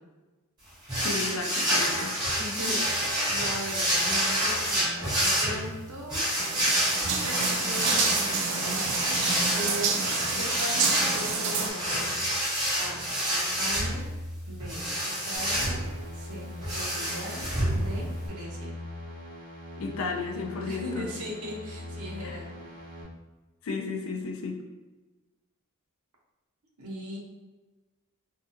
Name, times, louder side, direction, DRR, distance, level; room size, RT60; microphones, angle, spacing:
voice 1, 0.9-2.1 19.8-21.1 22.2-22.4 23.6-24.6, left 4 dB, 65° left, 2 dB, 0.4 m, -33 dB
sound 1, 0.9-18.3, equal, 20° right, 1.1 m, -28 dB
voice 2, 2.4-6.2 6.9-10.0 10.4-12.3 12.7-13.0 13.3-14.1 14.5-15.8 16.1-16.5 16.7-17.5 17.7-18.7 20.7-22.5 26.8-27.2, equal, 90° right, -2 dB, 0.7 m, -39 dB
sound 2, 6.4-11.7, right 6 dB, 55° right, 0.3 m, -30 dB
sound 3, 15.4-23.0, left 1 dB, 40° right, 0.8 m, -42 dB
2.6 x 2.3 x 2.5 m, 1.2 s
head